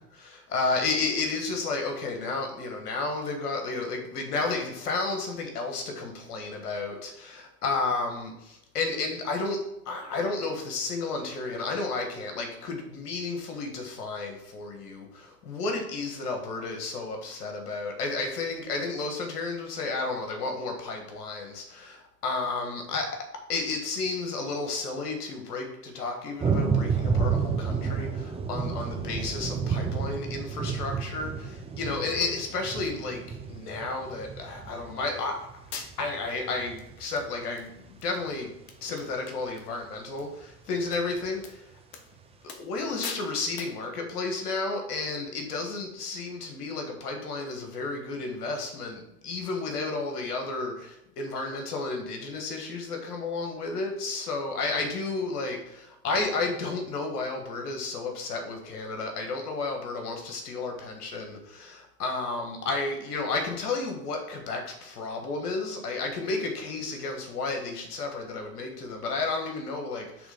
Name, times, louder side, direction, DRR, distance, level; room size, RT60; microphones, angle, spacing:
voice 1, 0.2-23.1 23.5-35.6 36.0-38.6 38.8-41.8 42.4-70.3, left 3 dB, 80° left, 3 dB, 1.6 m, -32 dB
sound 1, 26.4-38.2 40.8-40.9 41.2-41.3, right 5 dB, 15° right, 0.7 m, -31 dB
sound 2, 35.2-35.3 35.7-36.2 36.8-36.9 37.2-37.7 38.0-38.1 38.4-38.5 38.7-39.7 40.0-40.2 40.9-41.0 41.4-41.5 41.9-42.1 42.5-42.8 43.0-43.3 43.6-43.8, left 5 dB, 50° left, 1.3 m, -41 dB
7.0 x 3.6 x 5.1 m, 0.85 s
hypercardioid pair, 100°, 46 cm